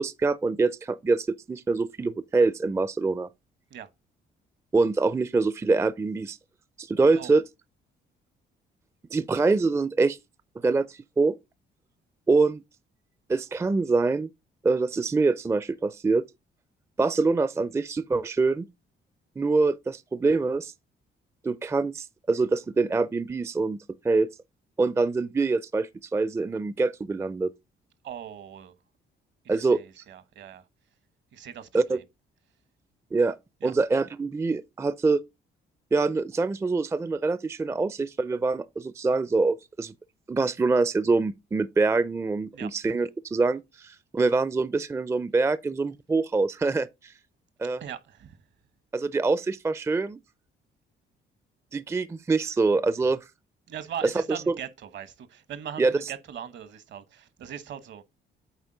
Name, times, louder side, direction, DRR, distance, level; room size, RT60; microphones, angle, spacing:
voice 1, 0.0-3.3 4.7-6.4 6.8-7.4 9.1-10.2 10.6-11.4 12.3-12.6 13.3-14.3 14.6-16.2 17.0-18.7 19.4-20.7 21.4-23.8 24.0-24.3 24.8-27.5 29.5-29.8 31.7-32.0 33.1-33.4 33.6-35.2 35.9-39.9 40.3-47.1 47.6-47.8 48.9-50.2 51.7-53.2 54.0-54.5 55.8-55.9, right 3 dB, 15° right, 0.4 m, -25 dB
voice 2, 28.0-28.7 29.5-30.6 31.3-32.0 33.6-33.7 42.5-42.7 47.8-48.4 53.7-58.0, right 9 dB, 65° right, 1.1 m, -40 dB
8.1 x 4.1 x 3.8 m
cardioid pair, 90°, 20 cm